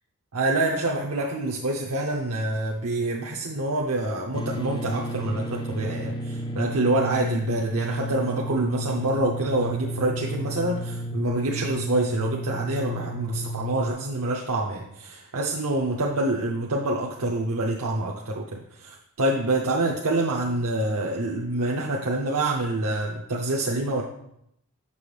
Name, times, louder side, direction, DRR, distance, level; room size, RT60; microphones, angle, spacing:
voice 1, 0.3-24.0, right 2 dB, 70° right, -2 dB, 0.7 m, -26 dB
sound 1, 4.3-13.9, right 1 dB, 20° left, 0.3 m, -32 dB
7.0 x 6.0 x 3.3 m, 0.76 s
head